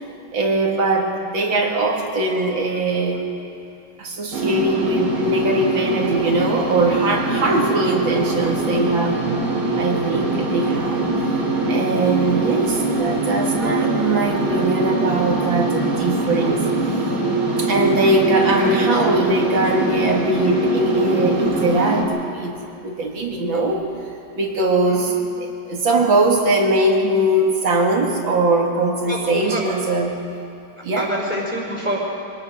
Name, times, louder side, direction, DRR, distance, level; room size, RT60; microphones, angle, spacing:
voice 1, 0.3-3.3 4.0-9.2 9.7-11.0 11.7-16.6 17.6-22.6 22.8-23.8 24.3-30.2 30.8-31.1, right 2 dB, 70° right, 0 dB, 2.8 m, -21 dB
sound 1, 4.3-22.0, right 2 dB, 55° right, 3.0 m, -23 dB
voice 2, 18.4-18.7 24.9-25.1 29.1-29.6 31.0-32.0, equal, 25° left, -3 dB, 4.7 m, -27 dB
23.5 x 18.5 x 6.3 m, 2.6 s
omnidirectional pair, 2.2 m